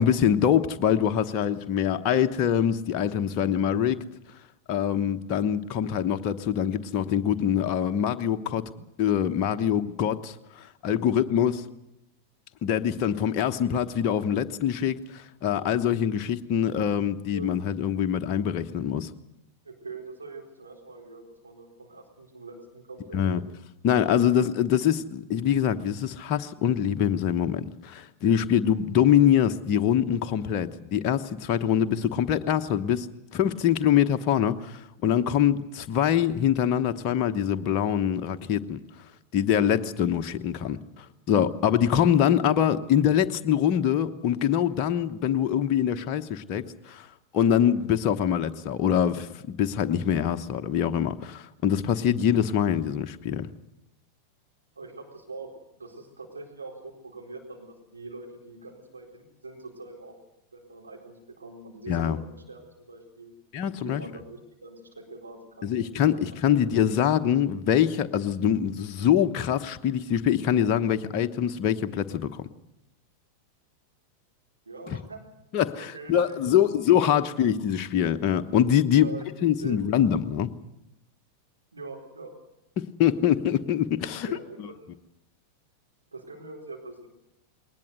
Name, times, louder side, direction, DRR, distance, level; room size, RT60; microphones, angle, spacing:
voice 1, 0.0-4.0 4.7-8.7 9.0-11.7 12.6-19.1 23.1-23.4 23.8-33.1 33.3-38.8 39.3-47.1 47.3-53.5 61.9-62.2 63.5-64.0 65.6-66.1 66.4-72.4 74.9-75.0 75.5-79.1 79.4-80.5 82.8-84.7, left 9 dB, 40° left, 6 dB, 1.0 m, -24 dB
voice 2, 19.6-23.4 41.8-42.0 42.3-42.8 54.8-60.2 60.5-63.3 63.8-66.2 66.5-66.6 74.7-75.2 75.7-77.0 78.9-79.3 79.6-79.8 81.7-82.3 84.3-84.9 86.1-87.1, right 3 dB, 75° right, 0 dB, 4.1 m, -43 dB
21.0 x 19.5 x 8.0 m, 0.86 s
figure-of-eight pair, 90°, 0 cm